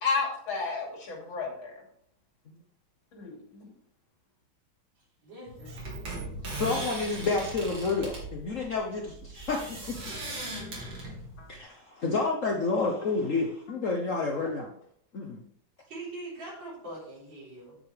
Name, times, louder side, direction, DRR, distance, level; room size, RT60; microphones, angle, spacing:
voice 1, 0.0-1.7 3.1-3.7, left 4 dB, 80° left, -1 dB, 3.5 m, -32 dB
voice 2, 5.2-6.6 15.9-17.8, right 2 dB, 70° right, -7 dB, 4.6 m, -43 dB
sound 1, 5.5-11.6, right 2 dB, 85° right, 3.2 m, -38 dB
voice 3, 6.6-10.2 11.5-14.7 15.1-15.4, left 3 dB, 50° left, 1 dB, 1.1 m, -30 dB
9.3 x 8.3 x 3.3 m, 0.69 s
omnidirectional pair, 2.1 m